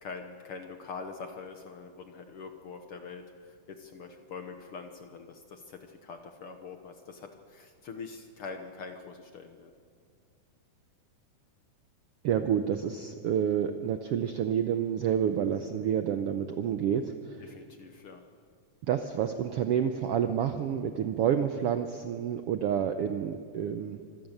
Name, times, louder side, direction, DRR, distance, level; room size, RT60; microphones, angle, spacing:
voice 1, 0.0-9.7 17.4-18.2, left 4 dB, 60° left, 6 dB, 1.6 m, -44 dB
voice 2, 12.2-17.4 18.9-24.0, right 8 dB, 75° right, 7 dB, 1.3 m, -29 dB
25.5 x 16.0 x 6.6 m, 2.1 s
omnidirectional pair, 3.6 m